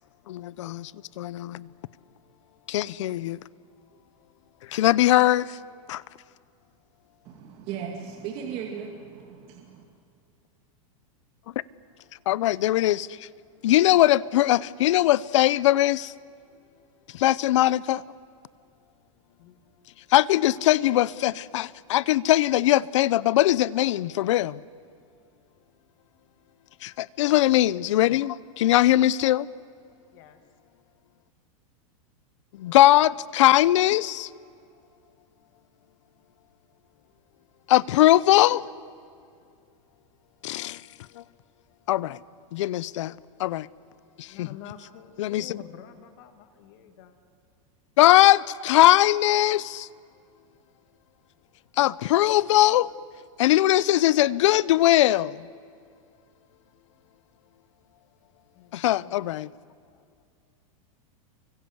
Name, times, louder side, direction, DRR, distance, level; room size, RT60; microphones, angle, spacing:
voice 1, 0.3-0.9 1.2-1.7 2.7-3.4 4.7-5.6 5.9-6.0 12.3-13.3 13.6-16.1 17.1-18.0 20.1-24.6 26.8-29.5 32.5-34.3 37.7-38.6 40.4-40.8 41.2-41.3 41.9-42.2 42.5-43.1 43.4-43.7 44.2-44.5 45.2-45.6 48.0-49.9 51.8-52.9 53.4-55.5 58.7-59.5, left 14 dB, 60° left, 0.7 m, -21 dB
voice 2, 7.2-8.9 9.3-9.8, right 8 dB, 30° right, 2.4 m, -36 dB
voice 3, 44.3-47.2 58.6-59.3, left 8 dB, 40° left, 1.9 m, -47 dB
29.0 x 24.5 x 8.0 m
supercardioid pair, 175°, 18 cm